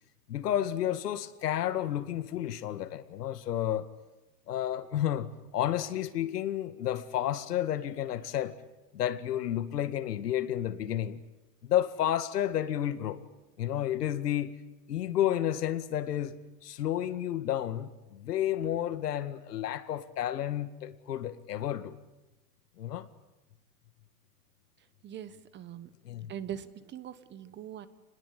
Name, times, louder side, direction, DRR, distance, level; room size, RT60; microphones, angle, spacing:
voice 1, 0.3-3.9 4.5-8.6 8.9-11.2 11.6-13.2 13.6-14.6 14.9-21.9 22.8-23.1 26.0-26.3, left 11 dB, 85° left, 2.1 m, -31 dB
voice 2, 25.0-25.9 26.3-27.9, right 10 dB, 25° right, 1.3 m, -41 dB
28.5 x 21.0 x 8.6 m
supercardioid pair, 140°, 46 cm